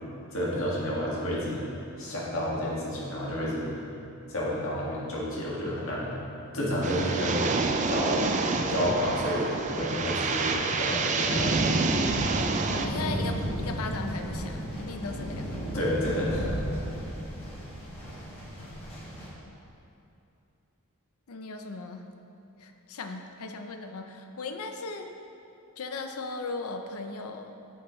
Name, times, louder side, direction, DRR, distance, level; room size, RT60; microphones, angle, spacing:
voice 1, 0.3-1.6 2.0-3.8 4.3-8.3 8.7-11.6 15.7-16.6, equal, 65° left, -6 dB, 1.8 m, -30 dB
sound 1, 6.8-12.9, right 4 dB, 35° right, 0.4 m, -28 dB
sound 2, 11.2-19.3, equal, 30° left, 1.7 m, -33 dB
voice 2, 12.7-15.6 19.2-19.3 21.3-22.1 22.6-25.1 25.8-27.5, left 3 dB, 80° left, 6 dB, 0.6 m, -37 dB
8.9 x 7.7 x 3.1 m, 2.8 s
head